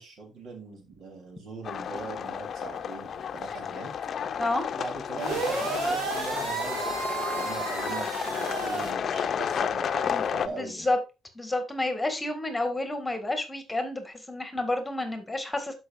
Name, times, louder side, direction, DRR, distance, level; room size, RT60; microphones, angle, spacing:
voice 1, 0.0-3.9 4.7-10.9, right 3 dB, 70° right, 3.7 m, -40 dB
sound 1, 1.6-10.5, left 7 dB, 55° left, 0.6 m, -32 dB
sound 2, 5.2-8.9, right 4 dB, 90° right, 2.4 m, -32 dB
voice 2, 10.5-11.0 11.4-15.8, left 2 dB, 15° left, 1.9 m, -30 dB
12.0 x 5.5 x 2.6 m
cardioid pair, 90°, 0 cm